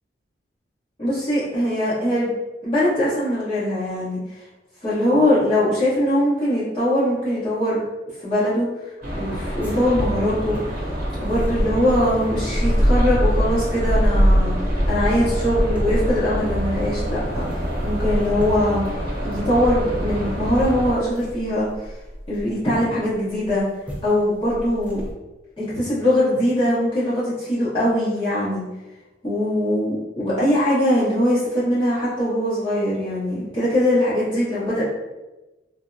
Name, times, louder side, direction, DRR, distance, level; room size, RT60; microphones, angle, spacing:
voice 1, 1.0-2.3 2.6-4.2 4.8-7.8 8.2-8.7 9.1-10.6 11.2-14.5 14.9-17.4 17.8-18.8 19.2-21.7 22.3-23.6 24.0-25.0 25.6-28.6 29.2-34.9, left 1 dB, 30° left, -11 dB, 1.0 m, -21 dB
sound 1, 9.0-20.9, equal, 50° right, 0.9 m, -28 dB
sound 2, 9.6-22.8 23.5-23.6 23.9-24.1 24.5-25.1, equal, 10° right, 0.4 m, -24 dB
3.4 x 2.0 x 2.5 m, 1.1 s
head